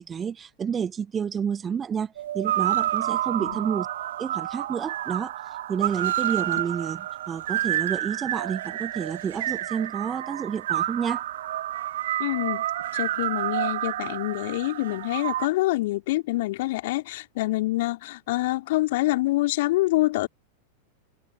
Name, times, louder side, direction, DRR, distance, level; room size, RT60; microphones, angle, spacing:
voice 1, 0.0-3.9 4.2-5.4 5.7-11.2, right 7 dB, 20° right, 1.4 m, -30 dB
sound 1, 2.2-15.5, right 13 dB, 60° right, 2.2 m, -29 dB
voice 2, 12.2-12.7 12.9-20.3, left 18 dB, 50° left, 3.4 m, -26 dB
figure-of-eight pair, 90°, 0 cm